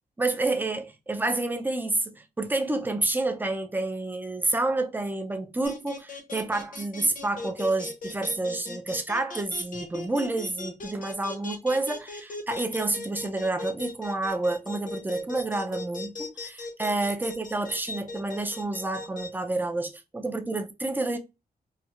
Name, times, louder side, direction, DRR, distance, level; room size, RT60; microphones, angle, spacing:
voice 1, 0.2-21.2, right 2 dB, 10° right, 0.4 m, -29 dB
sound 1, 5.7-19.3, left 3 dB, 60° left, 0.8 m, -38 dB
4.3 x 2.0 x 2.4 m
wide cardioid pair, 115°, 16 cm